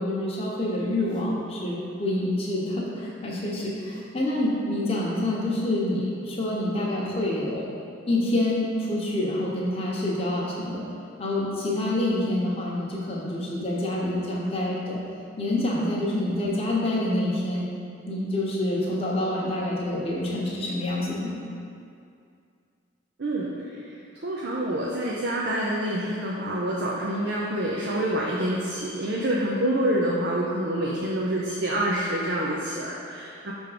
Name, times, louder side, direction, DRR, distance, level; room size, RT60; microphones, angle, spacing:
voice 1, 0.0-7.7 8.1-10.8 11.2-15.0 15.4-17.6 18.1-21.3, left 1 dB, 30° left, -5 dB, 0.9 m, -27 dB
voice 2, 23.2-23.5 24.2-33.5, right 1 dB, 55° right, -4 dB, 0.6 m, -27 dB
5.9 x 3.5 x 5.0 m, 2.4 s
head